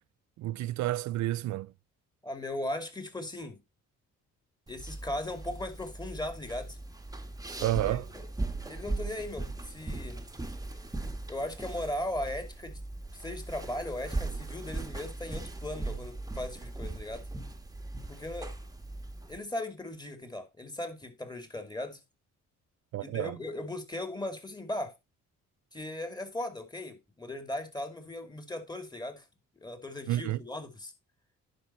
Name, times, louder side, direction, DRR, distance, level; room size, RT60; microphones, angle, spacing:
voice 1, 0.4-1.7 7.6-8.1 22.9-23.4 30.1-30.4, right 15 dB, 70° right, 0.5 m, -30 dB
voice 2, 2.2-3.6 4.7-6.8 7.6-8.0 8.7-10.2 11.3-12.8 13.1-17.2 18.1-18.5 19.3-22.0 23.0-24.9 25.7-29.3 29.6-30.9, left 1 dB, 15° left, 2.6 m, -38 dB
sound 1, 4.7-19.4, right 2 dB, 10° right, 1.4 m, -39 dB
10.5 x 5.6 x 4.3 m
cardioid pair, 90°, 30 cm